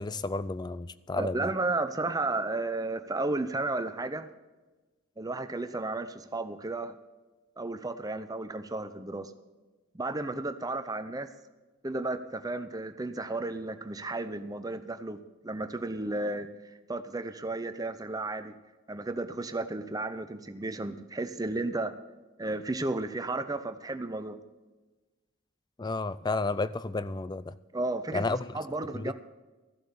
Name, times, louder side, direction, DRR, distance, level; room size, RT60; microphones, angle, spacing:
voice 1, 0.0-1.5 25.8-27.5 28.1-28.4 28.9-29.1, left 3 dB, 20° left, 16 dB, 0.4 m, -31 dB
voice 2, 1.1-4.3 5.2-6.9 7.6-9.3 9.9-11.3 11.8-18.5 18.9-22.0 22.4-24.4 27.7-29.1, right 2 dB, 15° right, 10 dB, 0.6 m, -33 dB
14.0 x 7.6 x 7.0 m, 1.2 s
head